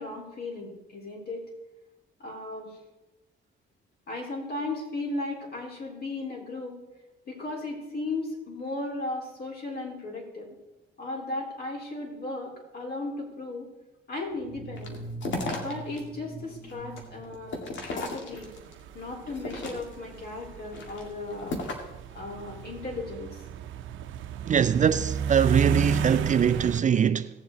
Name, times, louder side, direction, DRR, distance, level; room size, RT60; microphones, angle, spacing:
voice 1, 0.0-1.5 2.2-2.8 4.1-6.8 7.3-10.6 11.0-13.7 14.1-15.0 15.5-18.5 18.9-21.6 22.1-23.5, left 2 dB, 50° left, 4.1 m, -36 dB
sound 1, 14.3-18.4, right 2 dB, 10° left, 2.2 m, -43 dB
sound 2, 14.8-16.0 16.4-18.7 19.2-20.1 20.6-22.0, left 2 dB, 70° left, 2.1 m, -35 dB
sound 3, 18.3-26.8, right 6 dB, 80° right, 0.7 m, -32 dB
voice 2, 24.5-27.3, right 8 dB, 40° right, 0.4 m, -23 dB
17.5 x 7.5 x 4.0 m
cardioid pair, 90°, 20 cm